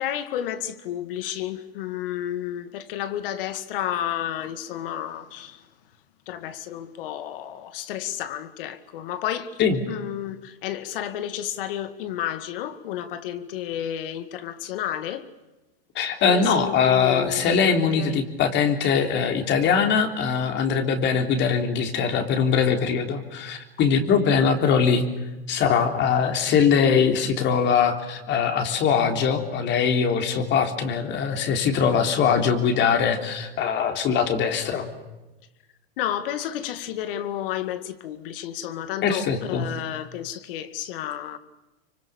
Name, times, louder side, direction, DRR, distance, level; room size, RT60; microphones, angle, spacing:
voice 1, 0.0-5.6 6.3-9.6 9.9-15.3 16.3-18.2 36.0-41.4, left 11 dB, 65° left, 2.3 m, -31 dB
voice 2, 16.0-25.0 25.5-34.9 39.0-39.7, left 6 dB, 35° left, 3.6 m, -22 dB
25.5 x 24.5 x 7.2 m
hypercardioid pair, 120°, 30 cm